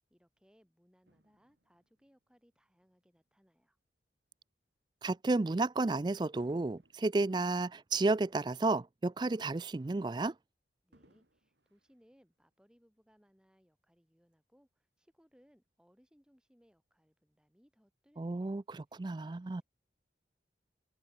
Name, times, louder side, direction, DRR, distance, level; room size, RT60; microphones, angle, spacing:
voice 1, 0.1-3.8 10.8-18.6 18.9-19.6, equal, 5° right, 7.9 m, -69 dB
Fireworks, 1.1-3.6 4.3-4.5 6.4-8.9 9.3-9.4 10.9-12.8 13.5-13.6, right 1 dB, 80° right, 6.8 m, -71 dB
voice 2, 5.0-10.3 18.2-19.6, right 3 dB, 25° right, 0.4 m, -32 dB
open air
head